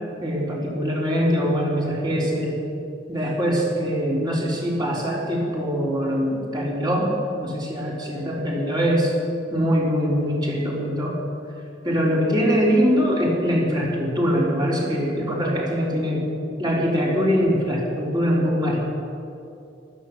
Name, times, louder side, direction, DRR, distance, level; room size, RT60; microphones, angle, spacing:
voice 1, 0.2-2.6 3.1-7.1 7.4-9.1 9.5-11.1 11.8-16.3 16.6-18.8, equal, 25° right, -4 dB, 3.9 m, -23 dB
15.5 x 13.0 x 7.3 m, 2.5 s
head